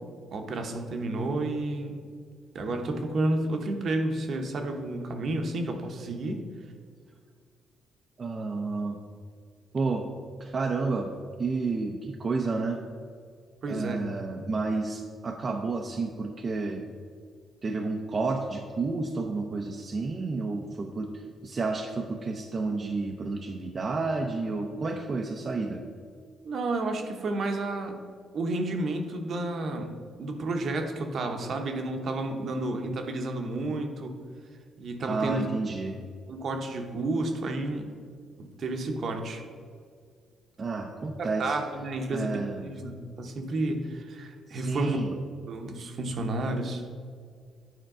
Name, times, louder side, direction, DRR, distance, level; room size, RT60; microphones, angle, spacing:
voice 1, 0.3-2.0 2.5-6.4 13.6-14.0 26.4-28.0 28.3-29.9 30.2-34.2 34.8-35.4 36.3-37.9 38.4-39.4 41.2-46.8, right 2 dB, 55° right, 4 dB, 0.9 m, -31 dB
voice 2, 8.2-9.0 9.7-10.1 10.4-11.1 11.4-12.8 13.7-16.8 17.6-21.1 21.4-25.8 35.1-36.0 40.6-41.6 42.1-42.7 44.5-45.1, right 3 dB, 40° right, 2 dB, 0.6 m, -30 dB
9.2 x 4.4 x 3.8 m, 2.1 s
cardioid pair, 90°, 0 cm